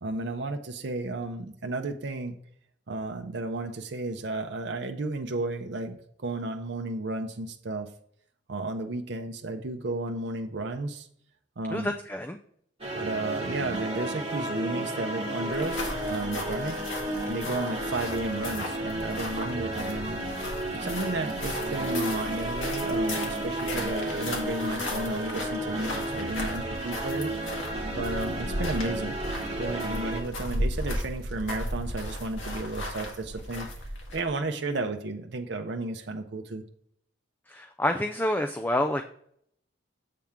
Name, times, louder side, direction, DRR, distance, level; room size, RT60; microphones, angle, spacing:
voice 1, 0.0-2.4 2.9-7.9 8.5-11.1 11.6-11.9 13.0-16.8 17.3-20.2 20.7-27.3 28.0-29.2 29.5-33.7 34.1-36.6, right 2 dB, 65° right, 4 dB, 0.6 m, -33 dB
voice 2, 11.7-12.4 37.5-39.0, left 1 dB, 10° left, 6 dB, 0.3 m, -28 dB
sound 1, 12.8-30.2, right 1 dB, 30° right, 1.6 m, -33 dB
sound 2, 15.5-34.4, left 1 dB, 85° left, 1.6 m, -36 dB
7.6 x 3.6 x 5.7 m, 0.65 s
head